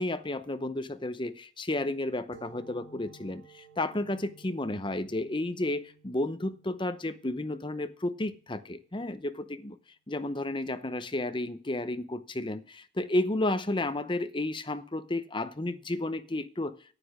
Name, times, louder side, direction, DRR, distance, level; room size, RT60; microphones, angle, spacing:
voice 1, 0.0-9.8 10.1-16.7, left 1 dB, 25° left, 0.7 m, -32 dB
sound 1, 2.3-9.6, right 3 dB, 70° right, 3.0 m, -57 dB
9.8 x 8.5 x 6.2 m
head